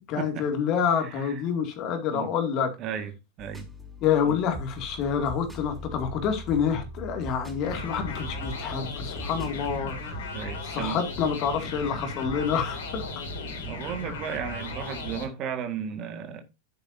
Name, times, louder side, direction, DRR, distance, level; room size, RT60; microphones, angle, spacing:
voice 1, 0.1-2.7 4.0-10.3 10.7-13.2 14.1-14.2, left 7 dB, 40° left, 2.4 m, -28 dB
voice 2, 1.0-1.4 2.1-2.3 2.8-3.1 3.4-3.7 4.2-4.3 10.3-11.0 13.6-16.4, right 8 dB, 35° right, 1.8 m, -34 dB
sound 1, 3.4-10.1, equal, ahead, 5.1 m, -41 dB
sound 2, 7.6-15.2, left 2 dB, 60° left, 3.5 m, -36 dB
10.5 x 8.6 x 2.7 m
figure-of-eight pair, 90°, 0 cm